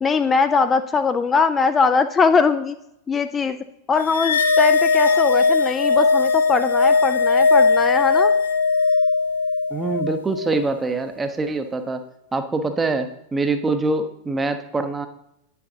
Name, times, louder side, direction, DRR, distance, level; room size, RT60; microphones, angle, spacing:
voice 1, 0.0-2.8 3.1-3.6 3.9-8.3, left 5 dB, 20° left, 10 dB, 0.3 m, -21 dB
sound 1, 4.1-10.6, left 4 dB, 70° left, 0.5 m, -18 dB
voice 2, 9.7-12.0 12.3-15.1, right 3 dB, 15° right, 8 dB, 0.7 m, -24 dB
9.4 x 6.6 x 2.8 m, 0.80 s
figure-of-eight pair, 90°, 0 cm